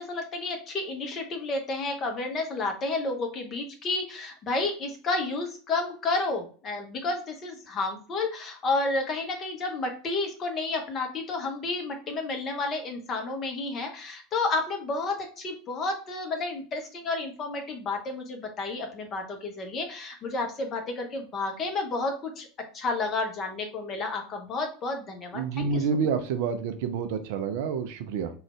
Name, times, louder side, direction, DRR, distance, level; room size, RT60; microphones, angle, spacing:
voice 1, 0.0-22.5 22.7-25.8, left 3 dB, 35° left, 3 dB, 0.8 m, -31 dB
voice 2, 25.3-28.3, right 5 dB, 55° right, 8 dB, 0.4 m, -28 dB
3.7 x 2.4 x 3.1 m, 0.40 s
figure-of-eight pair, 75°, 0 cm